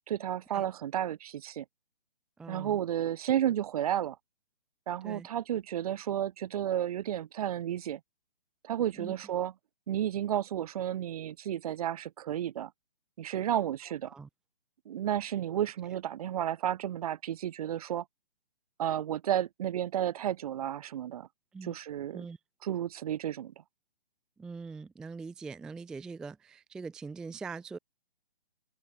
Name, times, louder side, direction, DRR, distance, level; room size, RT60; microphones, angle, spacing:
voice 1, 0.1-1.7 2.5-4.2 4.9-8.0 8.6-9.5 9.9-12.7 13.2-14.1 14.9-18.0 18.8-21.3 21.6-22.3 22.6-23.5, right 11 dB, 40° right, 1.8 m, -32 dB
voice 2, 2.4-2.8 5.0-5.3 8.9-9.1 14.0-14.3 21.5-21.8 22.1-22.4 24.4-27.8, right 4 dB, ahead, 0.6 m, -42 dB
open air
hypercardioid pair, 155°, 29 cm